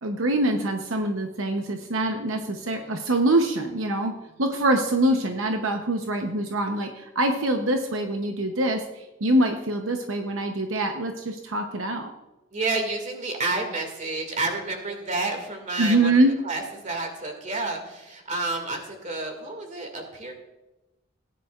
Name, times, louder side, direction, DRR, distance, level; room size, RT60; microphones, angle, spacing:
voice 1, 0.0-4.1 4.4-12.1 15.8-16.3, right 1 dB, 80° right, 4 dB, 0.9 m, -24 dB
voice 2, 2.6-3.0 4.2-4.6 12.5-20.4, right 3 dB, 40° right, 4 dB, 2.1 m, -30 dB
17.0 x 10.0 x 2.4 m, 1.0 s
head